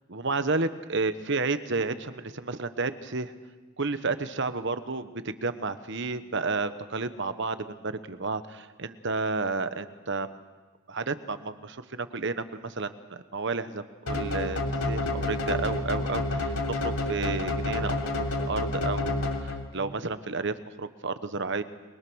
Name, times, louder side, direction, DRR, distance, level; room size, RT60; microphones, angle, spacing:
voice 1, 0.1-3.3 3.8-10.4 10.9-14.6 14.9-18.0 18.5-21.6, right 3 dB, 60° right, 11 dB, 1.2 m, -31 dB
sound 1, 14.1-19.8, left 2 dB, 85° left, 3.3 m, -29 dB
29.5 x 22.5 x 6.4 m, 1.3 s
head